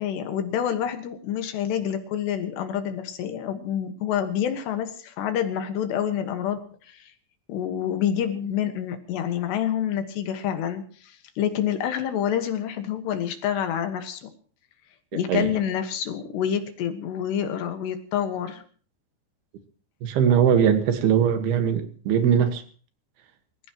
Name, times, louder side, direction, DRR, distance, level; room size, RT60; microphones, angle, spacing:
voice 1, 0.0-6.6 6.8-7.1 7.5-14.3 15.1-18.6, left 9 dB, 75° left, 7 dB, 3.5 m, -27 dB
voice 2, 20.0-22.6, right 8 dB, 65° right, 7 dB, 3.3 m, -20 dB
26.5 x 15.0 x 3.0 m, 0.43 s
omnidirectional pair, 5.2 m